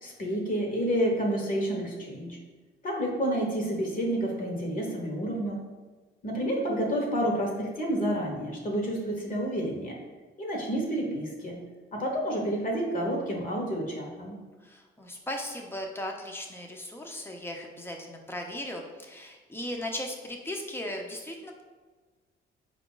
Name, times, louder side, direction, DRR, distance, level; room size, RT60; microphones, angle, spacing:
voice 1, 0.0-2.4 2.8-5.6 6.2-10.0 10.4-11.6 11.9-14.4, equal, 45° left, 0 dB, 1.0 m, -29 dB
voice 2, 14.6-21.6, left 1 dB, 10° left, 1 dB, 0.7 m, -37 dB
4.5 x 2.4 x 3.8 m, 1.3 s
cardioid pair, 90°, 20 cm